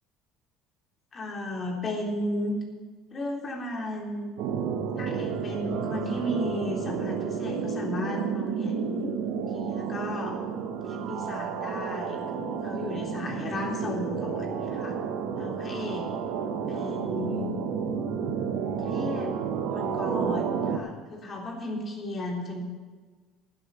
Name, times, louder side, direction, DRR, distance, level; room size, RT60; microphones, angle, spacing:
voice 1, 1.1-2.6 3.1-4.3 4.9-9.1 9.5-10.4 10.8-15.0 15.3-16.1 16.7-17.5 18.8-19.4 19.7-22.6, left 1 dB, 40° left, -1 dB, 3.4 m, -34 dB
sound 1, 4.4-20.8, right 6 dB, 65° right, 1.2 m, -31 dB
11.5 x 9.7 x 7.0 m, 1.4 s
hypercardioid pair, 70°, 0 cm